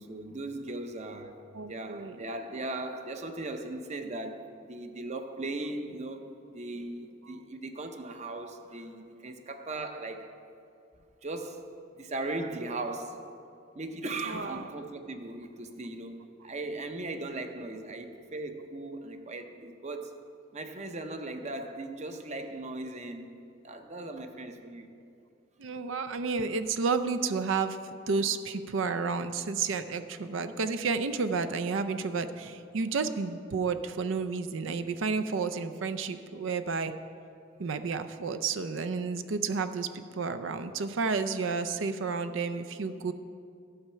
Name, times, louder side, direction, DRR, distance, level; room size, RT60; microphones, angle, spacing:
voice 1, 0.0-10.4 11.2-11.7 11.9-13.3 13.7-20.2 20.5-23.3 23.6-24.9, right 2 dB, 35° right, 6 dB, 0.7 m, -38 dB
voice 2, 1.5-2.2 14.3-14.6 25.6-27.8 28.1-36.9 37.6-43.1, right 4 dB, 70° right, 10 dB, 0.5 m, -31 dB
12.0 x 7.1 x 5.6 m, 2.4 s
head